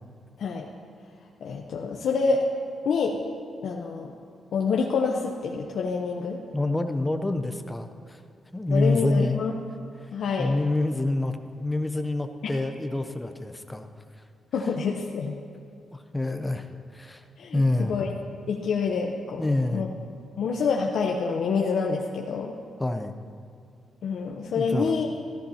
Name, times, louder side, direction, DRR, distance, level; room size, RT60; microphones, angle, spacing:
voice 1, 1.4-2.4 2.8-3.2 3.6-4.1 4.5-6.4 8.7-9.5 10.1-10.5 12.4-12.5 14.5-15.4 17.4-18.1 18.5-19.9 20.4-22.6 24.0-25.1, left 5 dB, 70° left, 0 dB, 0.8 m, -27 dB
voice 2, 6.5-8.2 8.5-9.4 10.0-10.1 10.4-13.9 15.9-16.7 16.9-17.2 17.5-18.0 19.4-19.9 22.8-23.2 24.5-24.9, left 2 dB, 10° left, 7 dB, 0.6 m, -27 dB
15.0 x 13.5 x 2.8 m, 2.4 s
cardioid pair, 135°, 0 cm